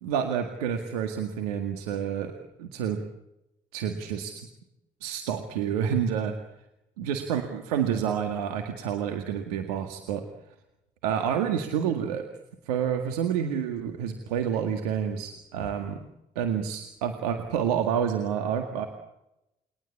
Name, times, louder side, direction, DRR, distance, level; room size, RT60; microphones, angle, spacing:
voice 1, 0.0-2.3 2.6-3.0 3.7-4.4 5.0-6.4 7.0-10.3 11.0-12.2 12.7-16.0 16.4-18.9, right 8 dB, 90° right, 6 dB, 1.9 m, -28 dB
29.0 x 22.0 x 8.6 m, 0.89 s
hypercardioid pair, 45°, 19 cm